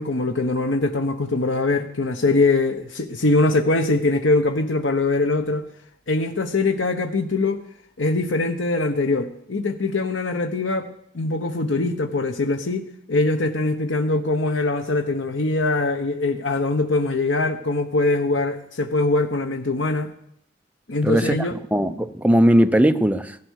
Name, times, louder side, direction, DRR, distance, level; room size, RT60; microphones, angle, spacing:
voice 1, 0.0-5.7 6.1-7.6 8.0-10.9 11.1-20.1 20.9-21.6, left 2 dB, 80° left, 1.1 m, -22 dB
voice 2, 21.0-23.4, equal, 5° right, 0.7 m, -19 dB
16.5 x 12.0 x 6.5 m
head